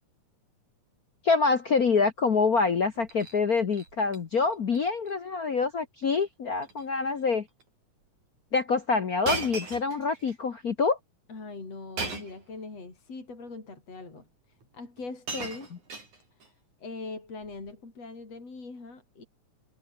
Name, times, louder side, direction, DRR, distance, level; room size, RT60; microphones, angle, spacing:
voice 1, 1.2-7.4 8.5-11.0, left 4 dB, 80° left, 0.8 m, -26 dB
Shatter, 2.9-3.4 3.7-4.2 4.5-4.8 5.1-5.2 6.0-6.3 6.6-6.9 7.6-7.7 9.2-10.4 12.0-12.5 13.5-13.6 14.6-14.7 15.0-16.5 17.4-17.7, right 4 dB, 65° right, 8.3 m, -37 dB
voice 2, 11.3-14.3 14.7-15.7 16.8-19.3, left 3 dB, 50° left, 7.2 m, -41 dB
omnidirectional pair, 3.7 m